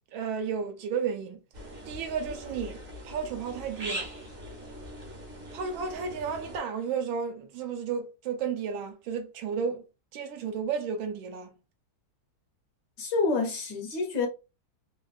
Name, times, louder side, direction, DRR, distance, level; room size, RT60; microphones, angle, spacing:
voice 1, 0.1-2.8 3.0-4.1 5.5-9.8 10.1-11.6, right 6 dB, 75° right, 1.3 m, -33 dB
sound 1, 1.5-6.6, equal, 50° right, 0.7 m, -41 dB
voice 2, 13.0-14.3, left 4 dB, 65° left, 1.3 m, -28 dB
3.4 x 2.3 x 2.4 m
omnidirectional pair, 2.3 m